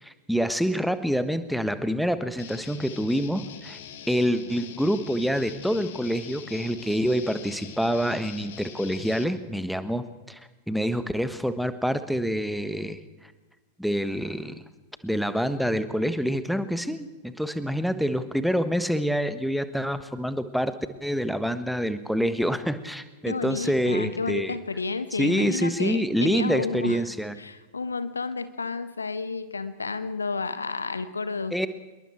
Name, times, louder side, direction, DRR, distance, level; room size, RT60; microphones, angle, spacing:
voice 1, 0.0-3.8 4.1-10.4 10.7-13.0 13.8-14.6 15.0-20.7 21.0-24.6 25.2-27.4 31.5-31.7, equal, ahead, 12 dB, 1.4 m, -26 dB
Guitar, 2.4-9.3, left 8 dB, 55° left, 2.4 m, -43 dB
voice 2, 23.3-27.0 27.4-31.7, left 4 dB, 75° left, 12 dB, 1.3 m, -31 dB
26.5 x 22.0 x 4.6 m, 1.2 s
figure-of-eight pair, 90°, 0 cm